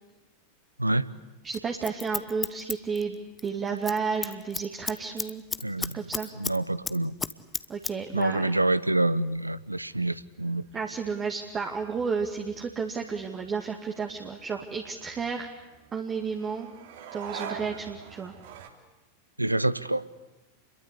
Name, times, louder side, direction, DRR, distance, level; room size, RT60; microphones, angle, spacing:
voice 1, 1.4-5.4 5.8-6.3 7.7-8.5 10.7-15.5 15.9-16.7 17.1-18.3, right 5 dB, 20° right, 2 dB, 2.2 m, -32 dB
Scissors, 1.5-3.5 3.8-4.0 4.2-6.6 6.8-7.9 8.2-8.3, left 4 dB, 15° left, 1.0 m, -33 dB
voice 2, 5.6-6.0 6.4-7.1 8.1-10.6 19.4-20.0, right 2 dB, 85° right, 17 dB, 0.9 m, -26 dB
sound 1, 9.8-18.7, right 7 dB, 55° right, 3.2 m, -46 dB
29.0 x 22.5 x 8.5 m, 1.1 s
figure-of-eight pair, 90°, 0 cm